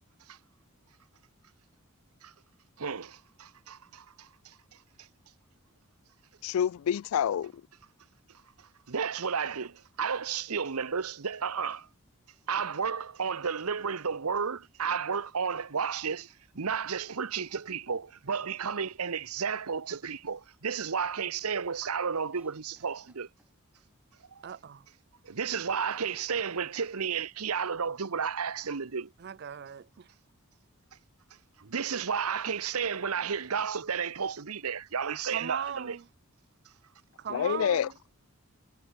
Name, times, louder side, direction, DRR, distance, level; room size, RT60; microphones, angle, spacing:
voice 1, 2.8-4.6 5.0-5.1 8.9-11.9 12.5-23.3 24.3-24.6 25.2-29.1 31.6-36.0, right 6 dB, 90° right, 0.9 m, -32 dB
voice 2, 6.4-7.5 37.3-37.9, left 9 dB, 75° left, 0.3 m, -27 dB
Cough, 22.3-23.8 24.2-24.3 24.6-25.0 25.3-27.6 27.8-27.9 28.7-29.5, right 1 dB, 5° right, 6.8 m, -62 dB
voice 3, 24.4-24.9 29.2-30.1 35.3-36.1 37.2-38.0, right 8 dB, 50° right, 0.4 m, -38 dB
head